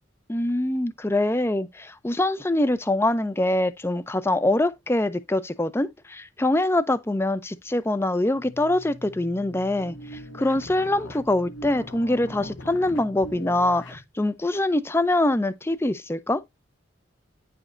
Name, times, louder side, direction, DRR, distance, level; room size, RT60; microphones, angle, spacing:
voice 1, 0.3-16.4, left 1 dB, 15° left, 0.5 m, -24 dB
sound 1, 8.3-14.1, left 1 dB, 75° left, 1.2 m, -41 dB
9.6 x 5.1 x 2.5 m
head